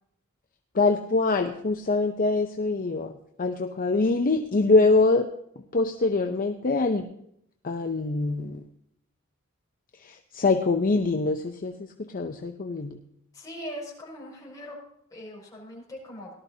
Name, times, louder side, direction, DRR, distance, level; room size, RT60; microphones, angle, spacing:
voice 1, 0.7-3.1 3.4-5.3 5.7-7.1 7.6-8.6 10.0-13.0, left 3 dB, 40° left, 5 dB, 0.6 m, -24 dB
voice 2, 13.3-14.8 15.1-16.3, equal, 15° left, -4 dB, 5.7 m, -40 dB
18.0 x 12.5 x 2.8 m, 0.73 s
head